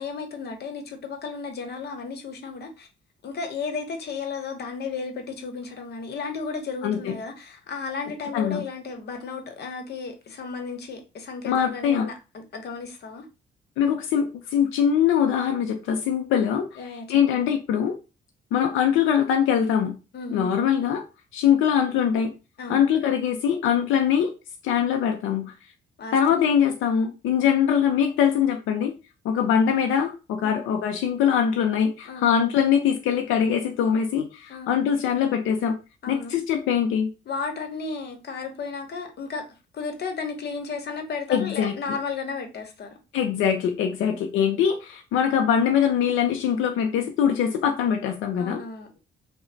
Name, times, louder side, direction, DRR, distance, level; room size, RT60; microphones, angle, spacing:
voice 1, 0.0-2.9 3.2-13.2 16.8-17.4 20.1-20.5 22.6-22.9 26.0-26.2 30.4-30.6 32.1-32.3 34.5-34.7 36.0-36.3 37.3-39.4 39.7-43.0 44.0-44.2 48.4-48.9, left 4 dB, 55° left, 0.9 m, -34 dB
voice 2, 6.8-7.2 8.3-8.6 11.5-12.1 13.8-16.8 17.1-18.0 18.5-20.0 20.3-21.0 21.3-22.3 22.7-24.3 24.6-25.5 26.1-28.9 29.2-35.8 36.1-37.1 41.3-41.7 43.1-48.6, left 8 dB, 90° left, 0.5 m, -22 dB
3.1 x 2.1 x 3.8 m
cardioid pair, 90°, 20 cm